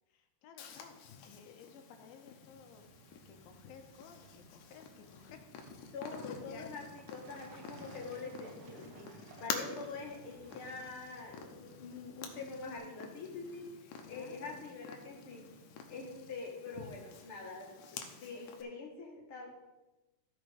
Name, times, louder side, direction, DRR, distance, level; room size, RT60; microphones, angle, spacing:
voice 1, 0.1-1.0 1.3-5.5 6.5-6.7 14.1-14.7, left 6 dB, 90° left, 5 dB, 2.8 m, -55 dB
Purr, 0.6-18.6, left 6 dB, 70° left, 2.3 m, -48 dB
Truck, 2.5-12.8, right 5 dB, 80° right, 1.4 m, -59 dB
voice 2, 5.9-15.4 15.9-19.6, left 4 dB, 50° left, -1 dB, 1.8 m, -45 dB
14.0 x 5.1 x 5.0 m, 1.0 s
omnidirectional pair, 4.2 m